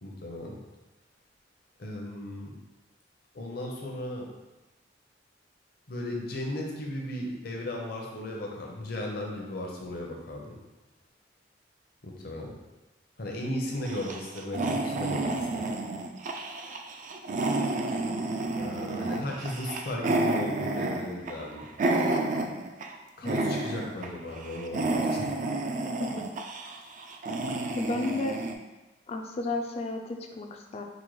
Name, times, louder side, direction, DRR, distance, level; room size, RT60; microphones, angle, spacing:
voice 1, 0.0-0.6 1.8-2.5 3.3-4.3 5.9-10.5 12.0-12.5 13.2-15.7 18.6-21.7 23.2-25.3, left 1 dB, 55° left, -1 dB, 0.7 m, -36 dB
voice 2, 13.4-13.8 23.2-23.6 26.0-26.3 27.8-28.4 29.1-30.8, left 2 dB, 35° left, 4 dB, 0.4 m, -34 dB
sound 1, 13.8-23.0 23.3-24.1 24.4-28.5, right 2 dB, 45° right, 0.3 m, -30 dB
5.0 x 2.2 x 3.1 m, 1.1 s
head